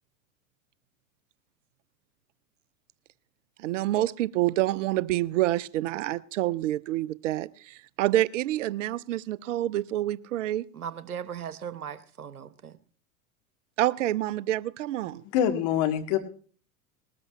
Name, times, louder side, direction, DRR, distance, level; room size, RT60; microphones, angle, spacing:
voice 1, 3.6-10.6 13.8-15.2, right 14 dB, 60° right, 0.6 m, -27 dB
voice 2, 10.7-12.8, right 8 dB, 85° right, 0.9 m, -38 dB
voice 3, 15.3-16.2, left 10 dB, 50° left, 2.0 m, -24 dB
20.0 x 13.5 x 3.0 m
figure-of-eight pair, 85°, 43 cm